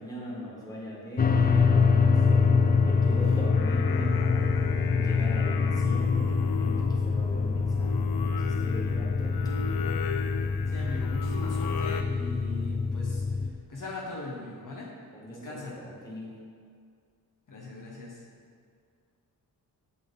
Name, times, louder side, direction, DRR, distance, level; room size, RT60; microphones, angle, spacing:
voice 1, 0.0-2.5 2.8-4.5 4.9-9.7 15.1-16.4, equal, 10° left, -5 dB, 1.8 m, -40 dB
sound 1, 1.2-13.5, left 5 dB, 25° left, 0.4 m, -25 dB
Singing, 3.2-12.0, left 7 dB, 75° left, 0.5 m, -38 dB
voice 2, 10.7-13.2 13.7-14.9 15.3-15.8 17.5-18.2, left 2 dB, 55° left, -4 dB, 1.2 m, -40 dB
6.9 x 6.1 x 4.0 m, 2.1 s
wide cardioid pair, 95°, 38 cm